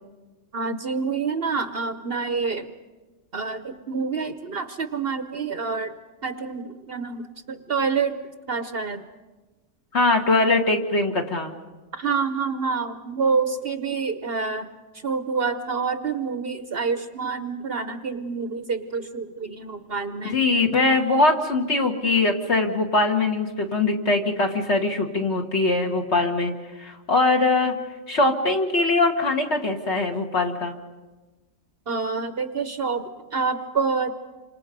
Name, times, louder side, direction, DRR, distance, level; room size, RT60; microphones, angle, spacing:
voice 1, 0.5-2.7 3.3-5.9 6.2-8.2 8.5-9.1 11.9-14.7 14.9-20.4 31.9-34.1, right 5 dB, 50° right, 9 dB, 1.0 m, -27 dB
voice 2, 9.9-11.5 20.2-26.5 26.8-27.8 28.1-30.8, left 2 dB, 50° left, 3 dB, 2.2 m, -22 dB
28.0 x 26.0 x 5.3 m, 1.2 s
omnidirectional pair, 1.5 m